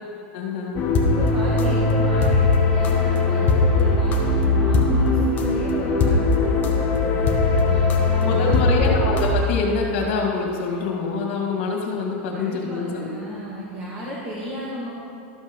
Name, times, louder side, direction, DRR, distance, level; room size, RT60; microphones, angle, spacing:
voice 1, 0.3-0.8 8.2-13.1, left 4 dB, 65° left, 0 dB, 2.3 m, -25 dB
sound 1, 0.8-9.3, left 3 dB, 30° left, 1.1 m, -19 dB
voice 2, 1.1-8.6 12.3-14.9, equal, 25° right, -5 dB, 1.4 m, -35 dB
13.0 x 5.6 x 5.3 m, 2.6 s
supercardioid pair, 150°, 6 cm